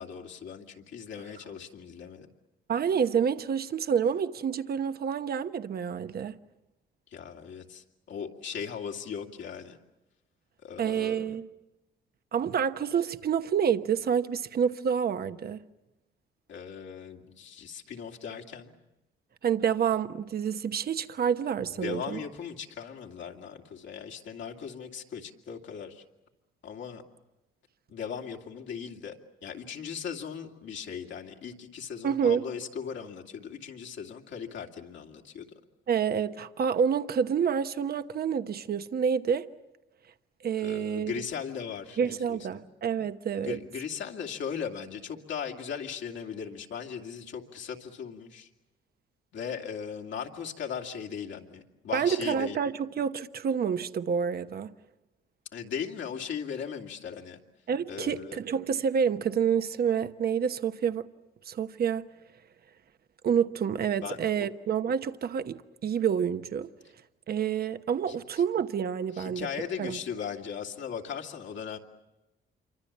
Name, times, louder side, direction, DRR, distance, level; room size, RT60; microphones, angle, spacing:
voice 1, 0.0-2.3 7.1-9.8 10.6-11.3 16.5-18.8 21.6-26.0 26.6-27.0 27.9-29.2 29.4-35.5 40.6-42.6 43.4-48.5 49.3-52.6 55.5-57.4 57.9-58.4 64.0-64.5 68.1-68.2 69.1-71.8, left 7 dB, 70° left, 2.5 m, -38 dB
voice 2, 2.7-6.4 10.8-11.5 12.3-15.6 19.4-22.2 32.0-32.4 35.9-39.5 40.4-41.1 42.0-43.6 51.9-54.7 57.7-61.1 61.5-62.1 63.2-66.7 67.3-69.5 69.8-70.0, right 7 dB, 50° right, 1.0 m, -28 dB
27.5 x 24.5 x 7.3 m
cardioid pair, 90°, 20 cm